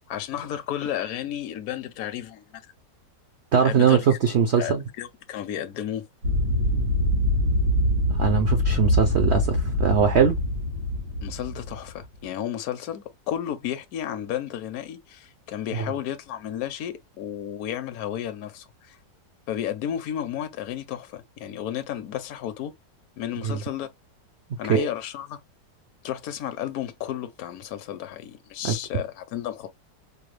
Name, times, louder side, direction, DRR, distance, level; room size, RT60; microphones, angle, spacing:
voice 1, 0.1-2.6 3.6-4.2 4.6-6.1 11.2-19.0 19.5-22.7 23.2-23.9 24.6-25.4 26.0-29.7, left 10 dB, 60° left, 1.1 m, -32 dB
voice 2, 3.5-4.8 8.1-10.4 15.7-15.9 23.4-23.6 24.7-24.9 28.6-28.8, right 7 dB, 55° right, 0.7 m, -21 dB
sound 1, 6.2-12.0, left 1 dB, 85° right, 3.0 m, -24 dB
5.1 x 2.2 x 3.2 m
omnidirectional pair, 1.9 m